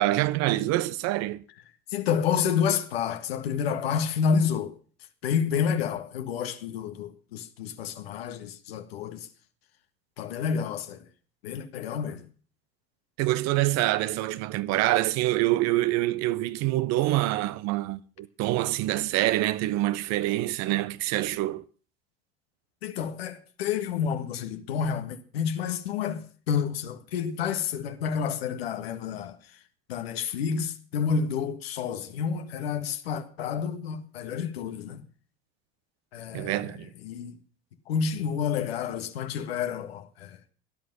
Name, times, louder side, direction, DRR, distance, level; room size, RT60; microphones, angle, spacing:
voice 1, 0.0-1.4 13.2-21.6 36.3-36.9, right 16 dB, 60° right, 1.0 m, -26 dB
voice 2, 1.9-4.7 5.2-9.3 10.2-11.1 11.4-12.3 22.8-29.4 29.9-35.0 36.1-36.7 37.0-37.4 37.9-40.4, left 7 dB, 80° left, 1.7 m, -29 dB
18.0 x 11.0 x 5.5 m
hypercardioid pair, 70°, 30 cm